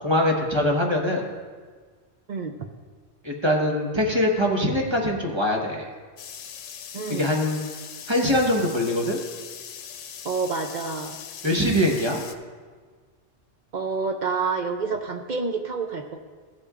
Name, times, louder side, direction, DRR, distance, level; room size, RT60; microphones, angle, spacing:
voice 1, 0.0-1.3 3.2-5.9 7.1-7.6 8.1-9.2 11.4-12.2, left 1 dB, 25° right, -1 dB, 1.1 m, -23 dB
sound 1, 6.2-12.3, left 8 dB, 90° left, 1.0 m, -40 dB
voice 2, 6.9-7.3 10.2-11.2 13.7-16.2, right 4 dB, 50° right, 5 dB, 0.6 m, -28 dB
15.0 x 8.4 x 2.4 m, 1.5 s
omnidirectional pair, 1.2 m